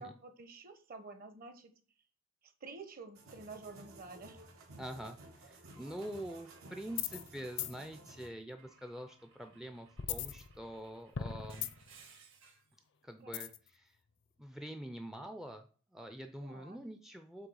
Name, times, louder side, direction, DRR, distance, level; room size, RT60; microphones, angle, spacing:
voice 1, 0.0-1.7 2.4-4.4 13.2-13.4 16.4-16.8, right 3 dB, 40° right, 8 dB, 1.0 m, -50 dB
sound 1, 3.1-8.3, right 2 dB, 80° right, 2.0 m, -55 dB
voice 2, 4.8-11.7 13.0-14.0 14.4-17.5, right 1 dB, ahead, 7 dB, 0.4 m, -46 dB
Car / Engine / Glass, 5.7-7.9 8.6-12.8, right 5 dB, 60° right, 1.8 m, -63 dB
sound 2, 6.9-7.3 7.6-7.7 10.0-10.8 11.2-12.0 13.3-13.7, left 9 dB, 55° left, 0.6 m, -38 dB
7.7 x 3.2 x 6.2 m, 0.40 s
head